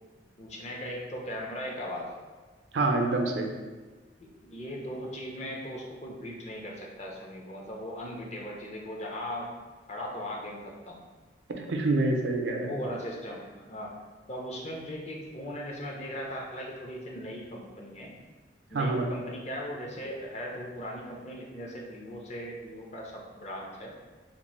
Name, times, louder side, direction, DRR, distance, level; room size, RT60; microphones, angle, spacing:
voice 1, 0.4-2.1 4.2-9.5 9.9-11.0 12.4-13.9 14.3-18.1 18.7-23.9, equal, 40° left, -1 dB, 0.6 m, -38 dB
voice 2, 2.7-3.5 11.6-12.7 18.7-19.0, right 2 dB, 80° right, 2 dB, 0.5 m, -26 dB
2.9 x 2.5 x 4.2 m, 1.3 s
head